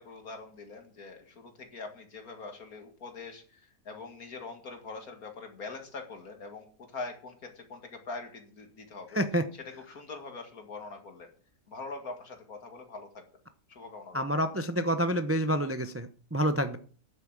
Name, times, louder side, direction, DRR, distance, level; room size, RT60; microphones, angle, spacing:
voice 1, 0.0-9.2 9.5-11.3 11.7-13.3 13.7-14.3, left 3 dB, 60° left, 5 dB, 2.6 m, -43 dB
voice 2, 14.1-16.8, equal, 20° right, 9 dB, 0.3 m, -28 dB
10.0 x 8.3 x 7.4 m, 0.42 s
omnidirectional pair, 1.8 m